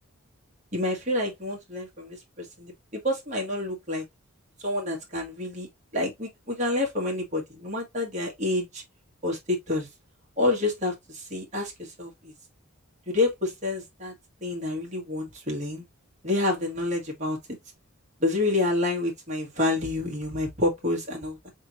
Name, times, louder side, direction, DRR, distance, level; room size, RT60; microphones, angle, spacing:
voice 1, 0.7-4.0 4.6-8.8 9.2-9.9 10.4-12.3 13.1-14.1 14.4-15.8 16.2-17.4 18.2-21.5, left 2 dB, 35° right, 1.8 m, -28 dB
4.4 x 3.6 x 2.7 m
head